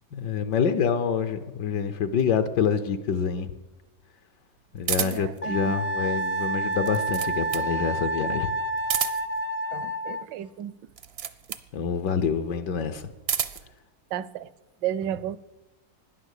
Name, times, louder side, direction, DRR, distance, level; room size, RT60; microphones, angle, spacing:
voice 1, 0.1-3.6 4.7-8.5 11.7-13.1, left 6 dB, 70° left, 1.3 m, -26 dB
sound 1, 4.8-5.4 6.7-7.7 8.8-9.4 10.9-11.7 12.9-13.7, right 7 dB, 60° right, 0.6 m, -30 dB
voice 2, 5.0-5.7 9.7-10.7 14.1-14.5 14.8-15.4, right 11 dB, 80° right, 1.3 m, -33 dB
Wind instrument woodwind instrument, 5.4-10.3, right 2 dB, 45° left, 0.5 m, -29 dB
12.0 x 10.0 x 8.2 m
omnidirectional pair, 2.0 m